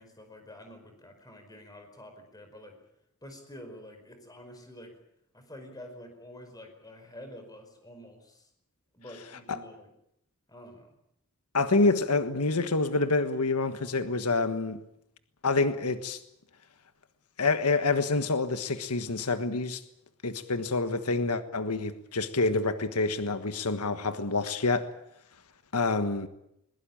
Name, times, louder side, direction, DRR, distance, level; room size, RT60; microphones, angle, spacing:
voice 1, 0.0-2.8 3.2-4.9 5.3-8.5 8.9-9.9 10.5-10.9, left 1 dB, 15° left, 5.1 m, -48 dB
voice 2, 11.5-14.8 15.4-16.2 17.4-19.8 20.2-24.9 25.7-26.3, left 3 dB, 85° left, 1.4 m, -27 dB
21.0 x 21.0 x 8.7 m
head